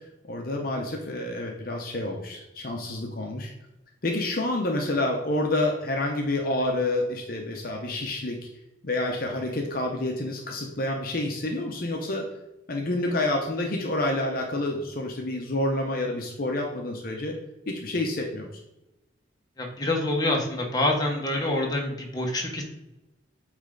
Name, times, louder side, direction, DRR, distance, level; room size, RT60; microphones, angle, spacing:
voice 1, 0.3-3.5 4.0-8.4 8.8-12.3 12.7-17.4 17.7-18.5, left 2 dB, 50° left, 1 dB, 0.7 m, -28 dB
voice 2, 19.6-22.6, left 1 dB, 20° left, 0 dB, 1.0 m, -26 dB
8.5 x 3.2 x 3.8 m, 0.94 s
head